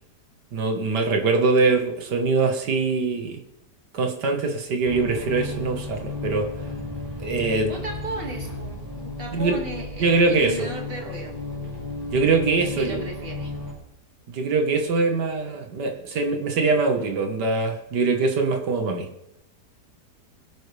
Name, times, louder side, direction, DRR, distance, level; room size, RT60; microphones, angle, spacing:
voice 1, 0.5-3.4 3.9-6.5 7.2-7.7 9.3-9.6 10.0-10.7 12.1-13.0 14.3-19.1, right 3 dB, 85° right, 4 dB, 2.1 m, -23 dB
sound 1, 4.8-13.7, left 2 dB, 10° right, 6.0 m, -34 dB
voice 2, 7.7-11.4 12.8-13.5, right 2 dB, 35° right, 1 dB, 2.5 m, -35 dB
21.0 x 11.5 x 3.4 m, 0.82 s
omnidirectional pair, 1.7 m